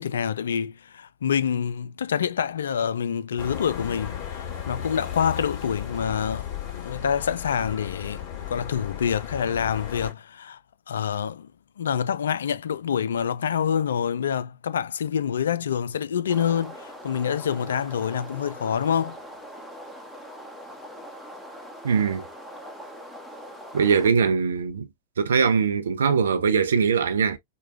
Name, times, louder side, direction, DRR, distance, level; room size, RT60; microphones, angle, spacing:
voice 1, 0.0-8.2 8.5-10.6 10.9-11.5 11.8-19.2, left 8 dB, 65° left, 0.3 m, -26 dB
sound 1, 3.4-10.1, left 9 dB, 35° left, 2.7 m, -35 dB
sound 2, 16.3-24.1, equal, ahead, 1.0 m, -42 dB
voice 2, 21.8-22.2 23.7-24.9 25.2-27.4, right 6 dB, 70° right, 0.6 m, -21 dB
4.7 x 2.2 x 2.3 m
figure-of-eight pair, 95°, 0 cm